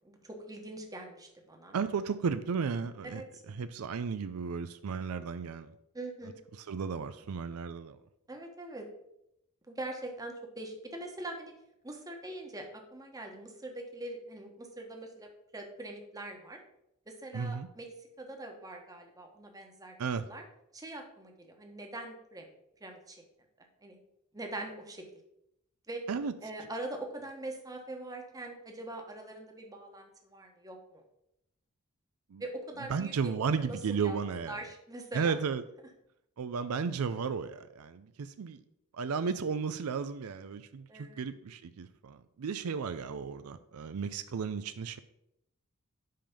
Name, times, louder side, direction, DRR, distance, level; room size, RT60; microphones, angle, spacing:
voice 1, 0.0-1.7 3.0-3.4 5.9-6.4 8.3-8.8 9.7-11.5 11.8-16.6 17.1-20.4 20.7-22.5 22.8-23.2 23.8-24.0 24.3-25.0 25.9-26.1 26.4-31.0 32.4-35.4 40.9-41.2, right 2 dB, 15° right, 2 dB, 1.2 m, -43 dB
voice 2, 1.7-3.2 3.5-5.7 6.7-8.0 17.3-17.7 20.0-20.2 26.1-26.3 32.3-32.4 32.9-34.6 35.1-35.6 36.4-38.6 38.9-45.0, right 5 dB, 80° right, 11 dB, 0.4 m, -34 dB
5.7 x 5.1 x 6.7 m, 0.80 s
head